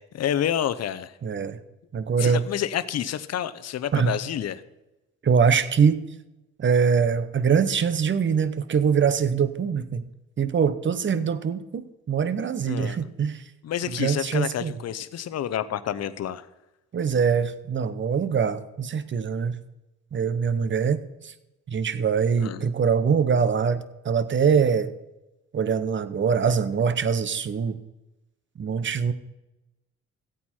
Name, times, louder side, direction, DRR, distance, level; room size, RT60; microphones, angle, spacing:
voice 1, 0.0-1.1 2.2-4.6 12.6-13.0 13.6-16.5 22.4-22.6, left 10 dB, 55° left, 13 dB, 0.8 m, -29 dB
voice 2, 1.2-1.6 1.9-2.5 3.9-4.1 5.2-6.1 6.6-10.1 10.4-13.4 13.9-14.7 16.9-19.6 20.1-21.3 21.7-24.9 25.5-27.8 28.6-29.1, right 6 dB, 40° right, 13 dB, 0.9 m, -23 dB
15.0 x 8.5 x 4.4 m, 0.99 s
cardioid pair, 90°, 30 cm